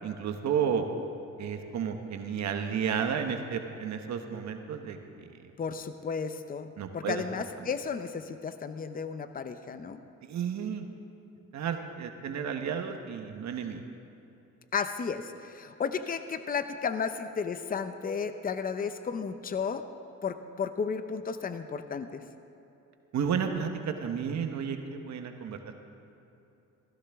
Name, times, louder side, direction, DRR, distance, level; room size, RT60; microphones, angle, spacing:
voice 1, 0.0-0.8 1.4-5.3 6.8-7.2 10.3-10.9 11.5-13.8 23.1-25.7, right 7 dB, 65° right, 5 dB, 1.1 m, -32 dB
voice 2, 5.6-10.0 14.7-19.8 20.2-22.2, left 6 dB, 30° left, 10 dB, 0.7 m, -33 dB
16.5 x 15.5 x 3.5 m, 2.9 s
cardioid pair, 90°, 30 cm